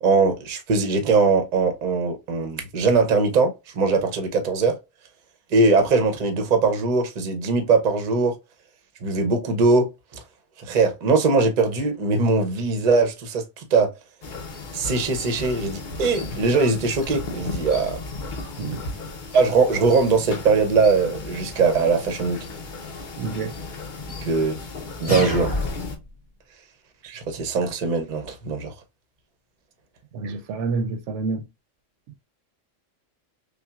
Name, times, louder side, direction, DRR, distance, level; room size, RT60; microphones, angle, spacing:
voice 1, 0.0-4.8 5.5-8.4 9.0-10.2 10.7-13.9 14.7-18.0 19.3-22.4 24.2-24.6 25.0-25.5 27.0-28.7, right 4 dB, 45° right, 0.7 m, -21 dB
sound 1, 14.2-26.0, left 3 dB, 45° left, 0.8 m, -35 dB
voice 2, 23.2-23.5 30.1-31.4, right 4 dB, 75° right, 0.9 m, -28 dB
sound 2, 25.1-26.1, left 1 dB, 30° left, 1.7 m, -26 dB
5.6 x 2.2 x 2.3 m
omnidirectional pair, 1.3 m